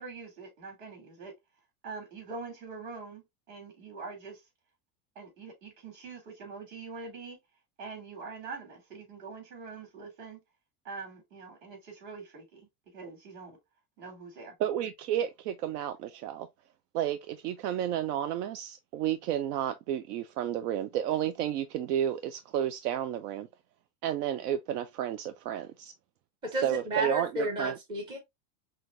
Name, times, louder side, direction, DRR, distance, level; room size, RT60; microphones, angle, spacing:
voice 1, 0.0-1.3 1.8-4.4 5.1-7.4 7.8-10.4 10.8-12.6 12.9-13.6 14.0-14.5, right 4 dB, 60° right, 3.1 m, -44 dB
voice 2, 14.6-16.5 16.9-23.5 24.0-25.9 26.6-27.8, right 10 dB, 80° right, 0.7 m, -31 dB
voice 3, 26.5-28.2, right 1 dB, 10° right, 0.5 m, -32 dB
5.7 x 2.6 x 2.6 m
supercardioid pair, 165°, 46 cm